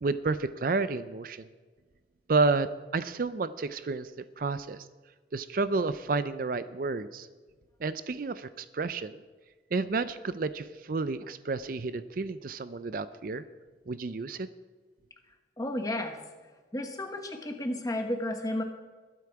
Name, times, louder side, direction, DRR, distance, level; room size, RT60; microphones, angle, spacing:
voice 1, 0.0-1.5 2.3-4.1 4.4-4.9 5.3-7.3 7.8-9.2 9.7-13.4 13.9-14.5, right 3 dB, 50° right, 13 dB, 0.4 m, -30 dB
voice 2, 15.6-16.2 16.7-18.6, left 1 dB, 20° left, 5 dB, 1.3 m, -32 dB
21.0 x 8.4 x 4.7 m, 1.4 s
head